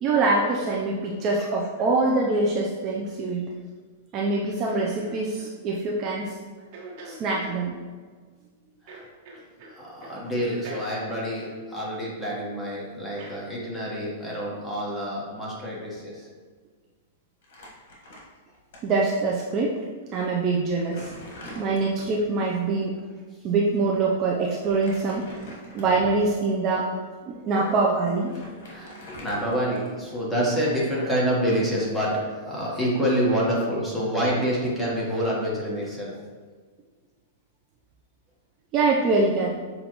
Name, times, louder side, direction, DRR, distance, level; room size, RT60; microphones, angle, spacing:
voice 1, 0.0-3.5 4.1-6.3 7.1-7.7 18.8-19.8 20.1-21.1 21.5-23.0 23.4-25.4 25.7-26.9 27.3-28.4 38.7-39.6, right 3 dB, 35° right, -2 dB, 0.5 m, -24 dB
sound 1, 4.7-5.5 6.7-7.6 8.9-9.7 10.0-10.2 10.5-12.3 13.2-13.4 13.9-14.1, right 2 dB, 55° right, 1.2 m, -42 dB
voice 2, 9.8-16.2 28.4-36.1, equal, 5° left, -6 dB, 1.3 m, -27 dB
Crumpling crinkling, 17.4-18.8 19.1-19.2 20.0-20.1 20.5-22.3 24.5-26.1 26.7-26.9 27.8-27.9 28.1-30.2, left 1 dB, 65° left, 1.5 m, -44 dB
7.0 x 2.5 x 3.0 m, 1.5 s
hypercardioid pair, 140°, 0 cm